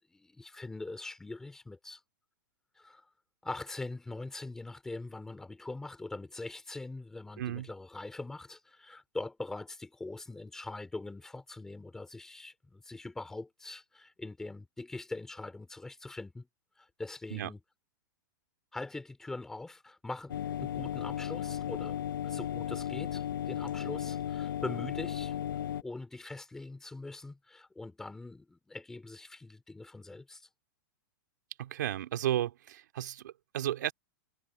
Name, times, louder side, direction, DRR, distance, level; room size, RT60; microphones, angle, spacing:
voice 1, 0.1-2.0 2.8-3.0 3.4-16.5 16.8-17.6 18.7-25.4 25.8-30.5, left 2 dB, 5° left, 2.7 m, -42 dB
voice 2, 7.4-7.7 17.3-17.5 31.6-33.9, right 12 dB, 60° right, 2.4 m, -33 dB
sound 1, 20.3-25.8, left 10 dB, 85° left, 1.1 m, -35 dB
supercardioid pair, 180°, 11 cm